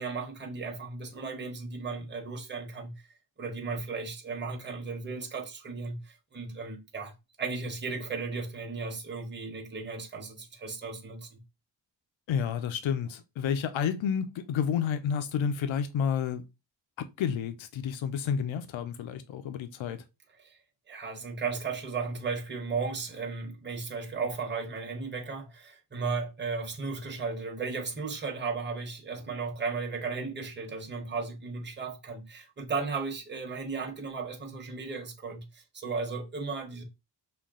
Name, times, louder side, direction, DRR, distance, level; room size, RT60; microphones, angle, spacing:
voice 1, 0.0-3.1 3.4-11.4 20.4-20.6 20.9-36.8, right 4 dB, 25° right, 1.1 m, -35 dB
voice 2, 12.3-16.4 17.0-20.0, left 7 dB, 80° left, 0.7 m, -30 dB
5.8 x 2.3 x 3.6 m
wide cardioid pair, 115°, 46 cm